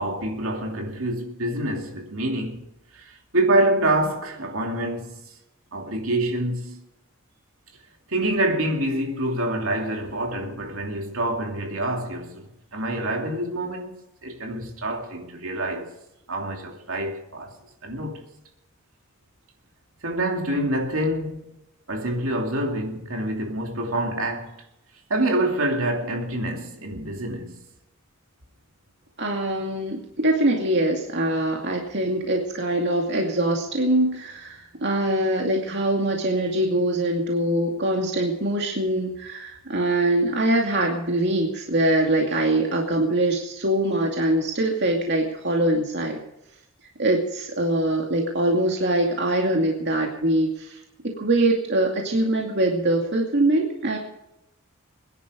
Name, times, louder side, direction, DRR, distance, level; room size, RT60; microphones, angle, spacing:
voice 1, 0.0-2.7 2.9-5.3 5.7-6.8 8.1-15.9 16.3-17.6 17.8-18.2 20.0-21.5 21.9-24.5 25.1-27.6, right 1 dB, 80° right, 2.7 m, -26 dB
voice 2, 29.2-46.2 47.0-50.8 51.2-54.0, right 1 dB, 60° right, 2.4 m, -23 dB
22.5 x 11.0 x 5.1 m
head